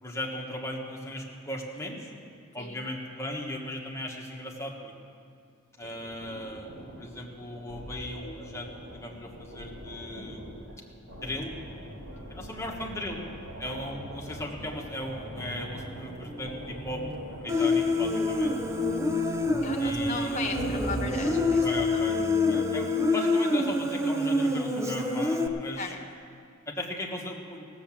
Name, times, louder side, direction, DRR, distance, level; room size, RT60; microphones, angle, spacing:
voice 1, 0.0-2.1 2.5-4.9 5.8-10.4 11.2-11.5 12.3-13.2 13.6-17.0 17.4-18.6 19.8-20.4 21.6-25.9 26.7-27.7, left 1 dB, 15° left, -1 dB, 1.5 m, -37 dB
sound 1, 5.8-21.5, equal, 70° right, 4.2 m, -42 dB
voice 2, 12.2-12.5 18.9-19.3 19.6-21.6 21.9-22.0 25.8-26.0, left 4 dB, 35° left, 3 dB, 1.2 m, -37 dB
sound 2, 14.6-24.5, right 1 dB, 45° right, 0.8 m, -44 dB
Human voice, 17.5-25.5, left 2 dB, 15° right, 0.6 m, -26 dB
17.0 x 7.3 x 7.4 m, 2.3 s
head